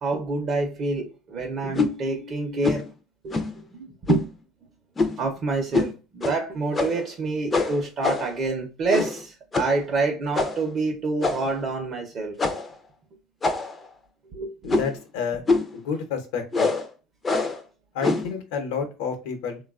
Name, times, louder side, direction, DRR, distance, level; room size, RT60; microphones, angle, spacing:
voice 1, 0.0-2.9 3.2-3.4 3.7-4.3 5.2-12.4 14.3-14.8, right 3 dB, 35° right, 0.6 m, -27 dB
sound 1, 1.7-1.9 2.6-2.9 3.3-3.6 4.1-4.3 5.0-5.3 5.7-5.9 6.2-6.4 6.7-7.1 7.5-8.4 8.9-9.2 9.5-9.8 10.3-10.7 11.2-11.6 12.4-12.7 13.4-13.9 14.7-15.0 15.5-15.8 16.5-16.9 17.2-17.6 18.0-18.3, left 3 dB, 20° left, 0.4 m, -25 dB
voice 2, 14.6-15.4 15.7-16.7 17.9-19.6, left 6 dB, 85° left, 0.8 m, -29 dB
3.3 x 2.2 x 2.3 m
cardioid pair, 150°, 0 cm